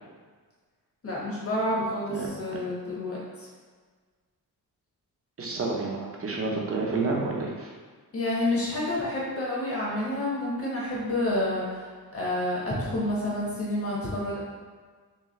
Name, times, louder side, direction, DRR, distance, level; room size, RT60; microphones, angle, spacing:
voice 1, 1.0-3.5 8.1-11.8 12.1-14.4, left 1 dB, 35° left, -5 dB, 1.1 m, -29 dB
voice 2, 5.4-7.7, right 3 dB, 35° right, -2 dB, 0.7 m, -29 dB
3.8 x 3.2 x 3.1 m, 1.5 s
wide cardioid pair, 160°, 38 cm